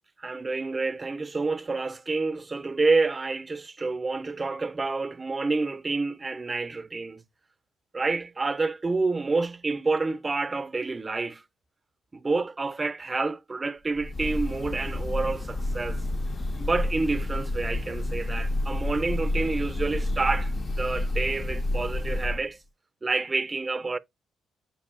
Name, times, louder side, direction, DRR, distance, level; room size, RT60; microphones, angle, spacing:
voice 1, 0.2-7.2 7.9-11.4 12.1-16.0 16.6-22.6 23.0-24.0, right 3 dB, 25° right, 0.5 m, -28 dB
Breathing / Bird, 14.0-22.5, left 1 dB, 40° left, 0.4 m, -29 dB
5.2 x 2.3 x 3.6 m
cardioid pair, 90°, 0 cm